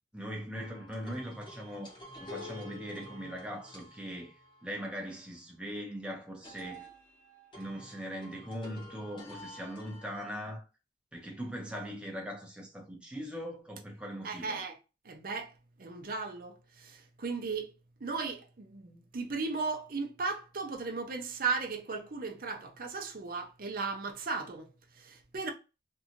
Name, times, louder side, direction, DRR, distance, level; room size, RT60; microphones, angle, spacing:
voice 1, 0.1-4.3 4.6-6.9 7.5-10.6 11.1-14.7, equal, 5° right, 0.8 m, -40 dB
sound 1, 0.5-5.2 6.4-10.5, left 1 dB, 25° left, 1.1 m, -49 dB
voice 2, 14.2-14.8 15.0-15.5 15.8-17.7 18.0-24.7 25.0-25.5, right 4 dB, 50° right, 0.6 m, -36 dB
2.7 x 2.4 x 2.8 m
head